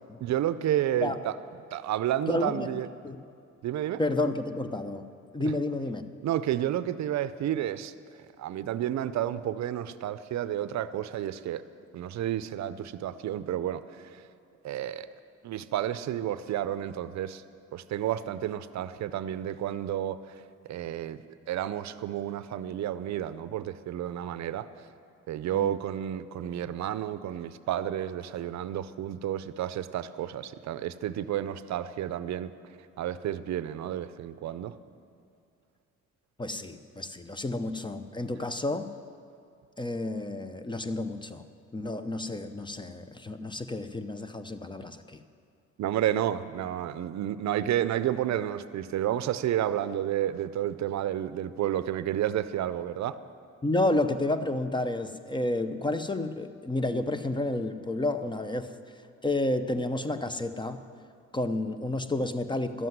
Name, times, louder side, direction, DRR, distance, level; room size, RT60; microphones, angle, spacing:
voice 1, 0.2-1.3 1.7-2.9 3.6-4.0 6.2-7.9 8.4-11.6 11.9-14.2 14.6-15.1 15.4-17.4 17.7-20.2 20.7-21.2 21.5-24.7 25.3-32.5 33.0-34.7 45.8-53.2, right 11 dB, 65° right, 14 dB, 0.6 m, -31 dB
voice 2, 2.3-2.7 3.0-3.2 4.0-5.1 5.3-6.0 25.5-25.7 36.4-38.9 39.8-41.4 41.7-45.2 53.6-58.7 59.2-60.8 61.3-62.9, left 2 dB, 15° left, 10 dB, 0.6 m, -30 dB
12.5 x 7.7 x 9.4 m, 2.5 s
cardioid pair, 90°, 30 cm